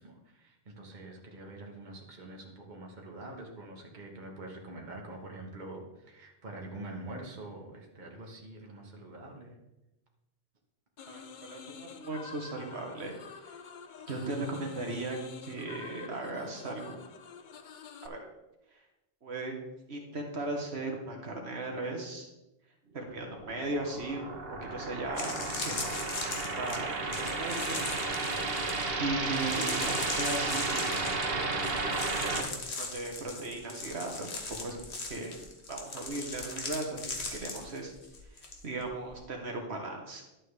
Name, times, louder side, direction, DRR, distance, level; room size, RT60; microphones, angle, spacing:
voice 1, 0.0-9.5, right 2 dB, 45° right, 0 dB, 1.4 m, -45 dB
sound 1, 11.0-18.1, left 6 dB, 55° left, 0.7 m, -48 dB
voice 2, 11.1-13.1 14.1-17.0 18.0-18.2 19.2-19.5 19.9-22.3 22.9-24.2 24.7-26.1 26.6-27.8 28.7-31.0 32.0-34.3 34.6-34.8 35.1-35.4 35.7-37.9 38.6-40.2, right 2 dB, 80° right, 1 dB, 1.6 m, -37 dB
sound 2, 23.2-32.4, right 3 dB, 60° right, 1.3 m, -33 dB
sound 3, 24.5-24.6 25.0-38.6 38.8-39.2, left 3 dB, 80° left, 1.6 m, -39 dB
11.5 x 7.6 x 3.3 m, 0.96 s
omnidirectional pair, 1.1 m